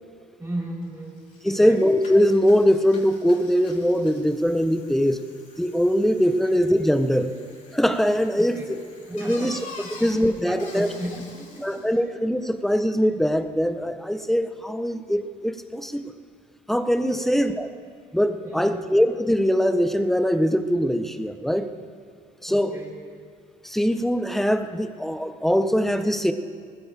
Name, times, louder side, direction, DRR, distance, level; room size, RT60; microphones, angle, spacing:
voice 1, 0.4-1.2 1.5-1.9 8.4-8.7 9.1-9.5 9.8-10.1 10.4-12.0 17.1-17.5 18.4-18.8 22.5-22.9, right 1 dB, 15° right, -5 dB, 4.4 m, -35 dB
Bicycle, 0.8-0.9 1.2-11.9, left 3 dB, 50° left, 3.3 m, -46 dB
voice 2, 1.4-5.2 5.6-7.3 7.7-8.8 9.1-9.6 10.0-10.9 11.6-16.1 16.7-17.7 18.1-21.7 22.4-22.7 23.6-26.3, equal, ahead, 9 dB, 0.8 m, -22 dB
20.0 x 15.0 x 3.4 m, 2.1 s
cardioid pair, 110°, 17 cm